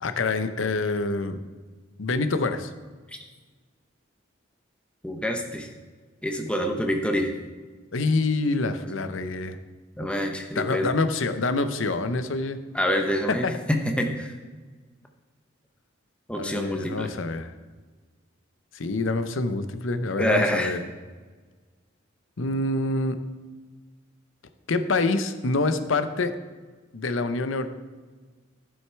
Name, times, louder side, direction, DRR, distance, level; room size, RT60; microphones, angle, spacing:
voice 1, 0.0-1.5 2.0-2.7 7.9-9.6 10.6-12.6 13.4-13.6 16.3-17.5 18.7-20.8 22.4-23.2 24.7-26.3 26.9-27.7, left 3 dB, 75° left, 10 dB, 0.7 m, -26 dB
voice 2, 5.0-5.7 6.2-7.3 10.0-10.9 12.7-14.3 16.3-17.1 20.2-20.8, equal, 5° left, 3 dB, 0.8 m, -26 dB
11.5 x 6.4 x 4.6 m, 1.4 s
head